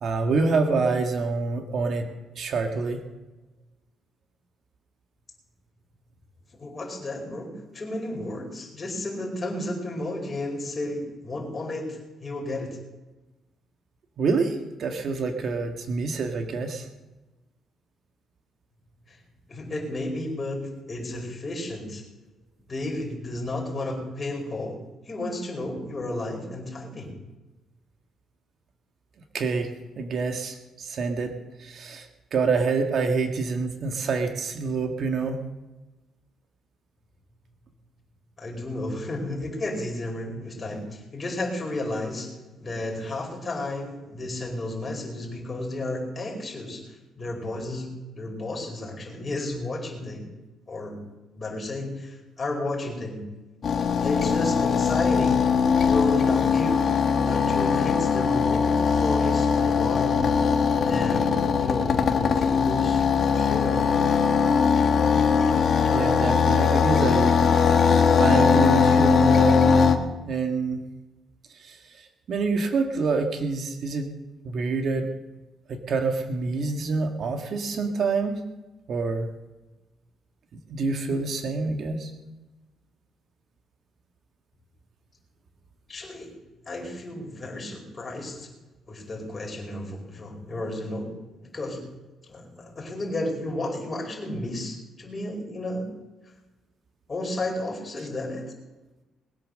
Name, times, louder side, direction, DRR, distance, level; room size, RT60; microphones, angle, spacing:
voice 1, 0.0-2.1 2.3-3.0 14.2-16.9 29.3-29.7 29.9-31.3 31.6-32.1 32.3-35.4 65.9-67.4 68.2-70.0 70.3-70.8 71.5-74.1 74.4-75.1 75.7-78.4 78.9-79.3 80.7-82.1, right 4 dB, 60° right, 4 dB, 1.7 m, -26 dB
voice 2, 6.5-12.8 19.1-19.2 19.5-22.0 22.7-27.1 38.4-50.3 50.7-51.0 51.3-53.2 54.0-55.4 55.8-56.9 57.3-60.2 60.8-63.0 63.4-63.9 85.9-86.3 86.7-88.5 88.9-91.1 91.5-91.8 92.3-95.9 97.1-98.5, left 1 dB, 30° left, 1 dB, 4.8 m, -32 dB
sound 1, 53.6-70.0, left 6 dB, 55° left, 1.4 m, -21 dB
21.0 x 8.6 x 6.5 m, 1.1 s
cardioid pair, 90°, 0 cm